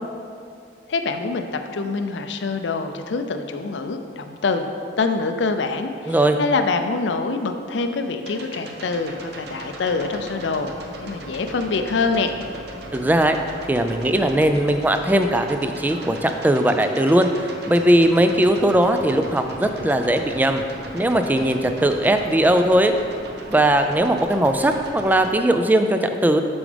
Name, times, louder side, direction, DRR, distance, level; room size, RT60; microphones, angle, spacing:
voice 1, 0.9-4.7 5.0-10.7 11.0-12.3, left 4 dB, 80° left, 7 dB, 0.5 m, -25 dB
voice 2, 6.0-6.4 12.9-13.4 13.7-17.3 17.7-20.6 20.9-22.9 23.5-26.4, right 1 dB, 10° right, 7 dB, 0.3 m, -19 dB
sound 1, 8.2-25.3, right 1 dB, 60° right, 0.8 m, -38 dB
8.5 x 6.2 x 3.4 m, 2.4 s
head